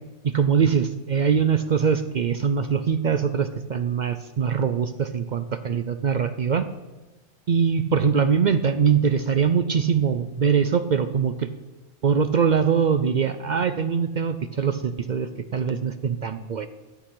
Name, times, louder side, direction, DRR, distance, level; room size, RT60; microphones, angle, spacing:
voice 1, 0.2-6.7 7.5-11.5 12.0-16.7, right 6 dB, 65° right, 10 dB, 0.4 m, -22 dB
13.0 x 8.1 x 5.8 m, 1.1 s
omnidirectional pair, 1.3 m